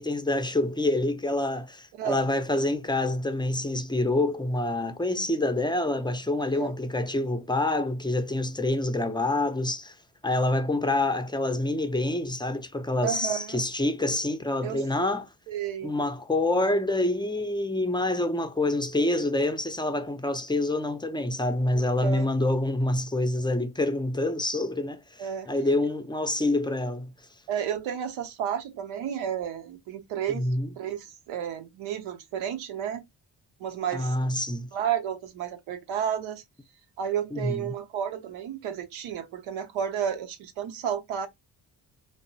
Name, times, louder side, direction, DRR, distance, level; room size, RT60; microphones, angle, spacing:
voice 1, 0.0-9.9 10.2-15.3 15.8-27.1 30.3-30.7 33.9-34.7 37.3-37.7, left 2 dB, 10° left, 0.5 m, -27 dB
voice 2, 13.0-13.6 14.6-14.8 15.5-15.9 21.7-22.3 25.2-25.5 27.5-30.5 30.8-33.0 33.6-34.2 34.7-36.4 37.0-41.3, right 9 dB, 80° right, 0.7 m, -32 dB
2.7 x 2.0 x 2.7 m
supercardioid pair, 55°, 47 cm